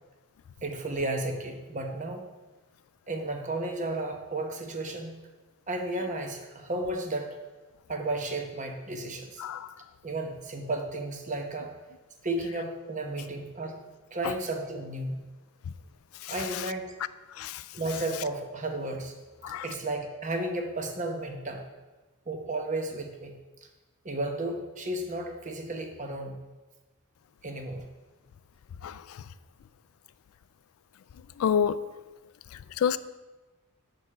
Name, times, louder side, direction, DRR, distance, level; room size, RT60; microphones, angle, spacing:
voice 1, 0.6-2.2 3.1-5.2 5.7-7.3 7.9-9.5 10.0-11.7 12.2-13.8 14.1-15.2 16.3-16.9 17.7-19.1 19.6-21.6 22.3-23.3 24.0-26.4 27.4-27.9, right 2 dB, 35° right, 4 dB, 0.8 m, -33 dB
voice 2, 31.4-31.8 32.8-33.0, left 8 dB, 75° left, 15 dB, 0.3 m, -27 dB
6.5 x 4.9 x 5.6 m, 1.2 s
head